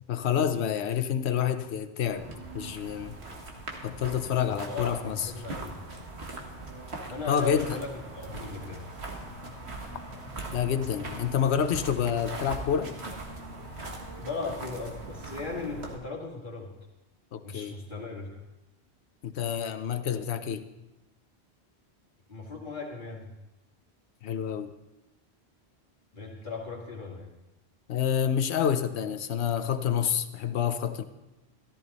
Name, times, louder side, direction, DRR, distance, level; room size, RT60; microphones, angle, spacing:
voice 1, 0.1-2.3 2.5-3.1 3.8-5.3 7.3-7.8 10.5-12.9 17.3-17.7 19.2-20.7 24.2-24.7 27.9-31.0, left 8 dB, 80° left, 1.1 m, -28 dB
sound 1, 2.1-16.0, right 2 dB, 75° right, 2.0 m, -40 dB
voice 2, 4.4-5.8 7.1-8.8 13.8-13.9 14.2-16.7 17.4-18.4 22.3-23.3 26.1-27.3, left 3 dB, 45° left, 2.1 m, -37 dB
14.0 x 14.0 x 4.1 m
omnidirectional pair, 1.1 m